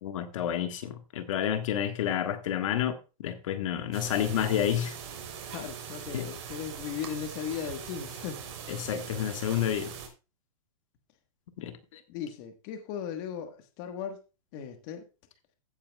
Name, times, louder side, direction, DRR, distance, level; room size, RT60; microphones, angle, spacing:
voice 1, 0.0-5.0 6.1-6.3 8.7-9.9 11.6-12.0, left 10 dB, 60° left, 1.6 m, -30 dB
sound 1, 3.9-10.1, right 7 dB, 45° right, 3.5 m, -41 dB
voice 2, 5.5-8.4 12.1-14.2 14.5-15.1, left 8 dB, 40° left, 1.4 m, -37 dB
15.5 x 8.9 x 2.3 m
hypercardioid pair, 145°, 19 cm